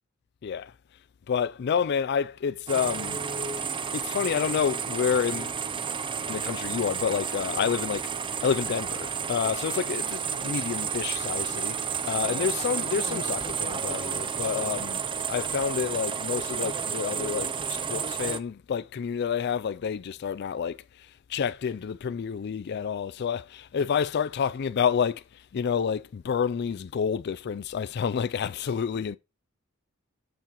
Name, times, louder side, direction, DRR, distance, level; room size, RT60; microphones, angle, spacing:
voice 1, 1.3-3.2 3.9-5.5 6.3-8.1 8.4-11.7 12.1-15.0 15.3-20.8 21.3-25.2 25.5-29.2, left 7 dB, 50° left, 0.3 m, -29 dB
sound 1, 2.7-18.4, right 6 dB, 25° right, 0.5 m, -31 dB
11.5 x 6.9 x 3.0 m
head